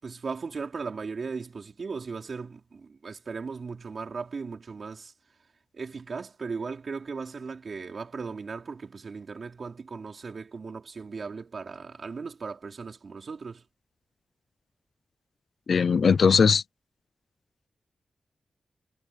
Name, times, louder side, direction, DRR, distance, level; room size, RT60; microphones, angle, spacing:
voice 1, 0.0-5.1 5.7-13.6, right 4 dB, 50° right, 5.0 m, -37 dB
voice 2, 15.7-16.6, left 6 dB, 60° left, 0.6 m, -19 dB
wide cardioid pair, 135°, 0 cm